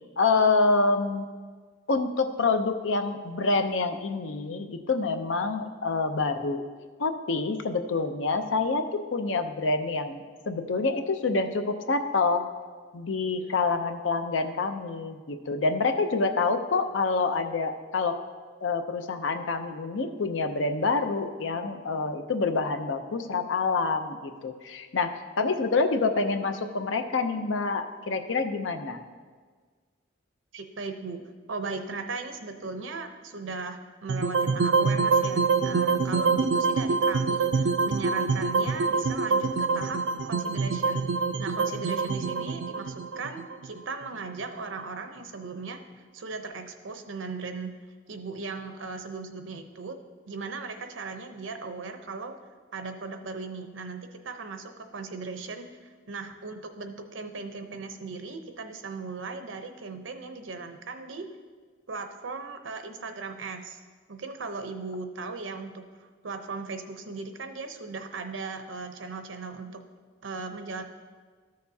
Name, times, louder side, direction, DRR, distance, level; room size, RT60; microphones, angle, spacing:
voice 1, 0.2-1.3 1.9-6.6 7.0-12.5 12.9-18.2 18.6-29.0, left 3 dB, 80° left, 7 dB, 0.6 m, -27 dB
voice 2, 30.5-31.2 31.5-40.0 40.3-41.0 41.4-47.7 48.1-50.0 50.3-52.3 52.7-61.3 61.9-63.8 64.1-69.8 70.2-70.8, right 4 dB, 90° right, 6 dB, 0.7 m, -38 dB
sound 1, 34.1-44.3, right 4 dB, 65° right, 0.4 m, -25 dB
13.5 x 6.6 x 2.8 m, 1.5 s
head